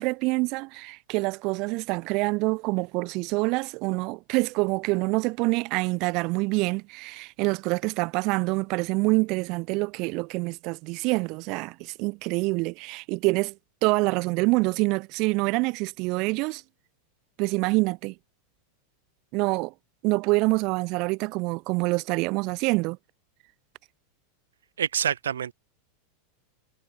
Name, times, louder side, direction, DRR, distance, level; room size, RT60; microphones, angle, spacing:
voice 1, 0.0-13.5 13.8-16.6 17.4-18.1 19.3-19.7 20.0-23.0, right 26 dB, 50° right, 6.8 m, -26 dB
voice 2, 24.8-25.5, right 9 dB, 80° right, 7.4 m, -26 dB
hypercardioid pair, 90°, 0 cm